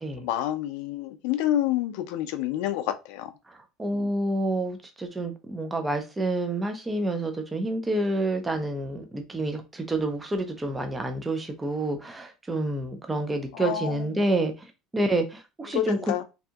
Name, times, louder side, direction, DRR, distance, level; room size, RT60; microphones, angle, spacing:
voice 1, 0.2-3.3 3.9-4.1 13.5-14.2 15.7-16.2, left 12 dB, 70° left, 0.4 m, -28 dB
voice 2, 3.5-14.5 14.9-16.1, right 1 dB, 10° right, 0.3 m, -28 dB
2.7 x 2.6 x 2.3 m
cardioid pair, 165°, 0 cm